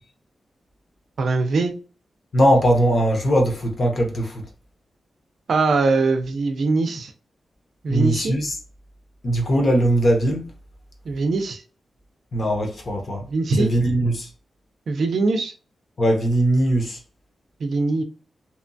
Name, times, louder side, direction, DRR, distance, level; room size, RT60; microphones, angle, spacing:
voice 1, 1.2-1.7 5.5-7.1 7.8-8.4 11.1-11.6 13.3-13.7 14.9-15.5 17.6-18.0, right 3 dB, 65° right, 0.5 m, -22 dB
voice 2, 2.3-4.4 7.9-8.6 9.2-10.5 12.3-13.2 13.6-14.3 16.0-17.0, right 1 dB, 45° left, 0.7 m, -20 dB
2.8 x 2.2 x 2.6 m
wide cardioid pair, 150°, 0 cm